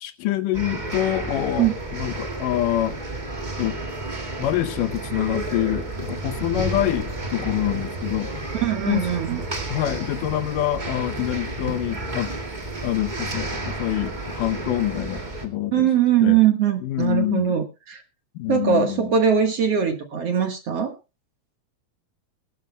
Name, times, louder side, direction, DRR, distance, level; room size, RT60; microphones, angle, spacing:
voice 1, 0.0-3.0 3.6-3.8 4.4-8.3 8.9-9.0 9.7-12.3 12.8-15.9 16.2-16.4 16.8-17.5 18.4-19.1, left 13 dB, 75° left, 2.3 m, -26 dB
sound 1, 0.5-15.5, right 2 dB, 20° right, 1.5 m, -31 dB
voice 2, 8.6-9.4 15.7-18.0 18.5-20.9, right 8 dB, 55° right, 2.1 m, -21 dB
21.5 x 12.5 x 2.2 m
omnidirectional pair, 4.0 m